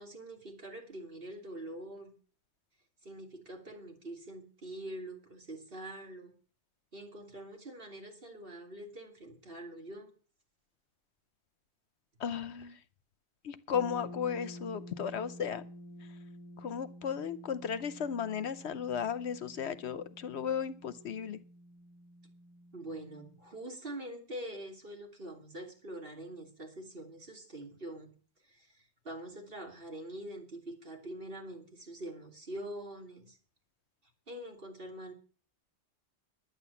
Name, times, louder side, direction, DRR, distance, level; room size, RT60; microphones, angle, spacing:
voice 1, 0.0-2.1 3.0-6.3 6.9-10.1 22.7-28.1 28.5-33.4 34.3-35.1, right 1 dB, 50° right, 2 dB, 3.2 m, -44 dB
voice 2, 12.2-12.8 13.4-15.6 16.6-21.4, left 7 dB, 70° left, 15 dB, 1.0 m, -35 dB
sound 1, 13.7-23.5, equal, 15° right, 2.1 m, -50 dB
11.0 x 9.7 x 7.0 m, 0.40 s
omnidirectional pair, 1.2 m